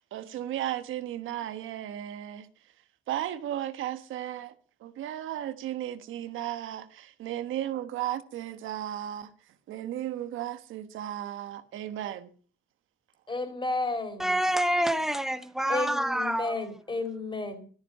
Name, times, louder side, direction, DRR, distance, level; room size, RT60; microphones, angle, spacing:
voice 1, 0.0-2.5 3.1-4.5 4.8-9.3 9.7-12.3, right 12 dB, 85° right, 1.3 m, -35 dB
voice 2, 13.3-14.4 15.7-17.7, left 2 dB, 25° left, 4.4 m, -32 dB
voice 3, 14.2-16.5, right 1 dB, ahead, 1.5 m, -27 dB
14.0 x 13.5 x 5.6 m
cardioid pair, 90°, 20 cm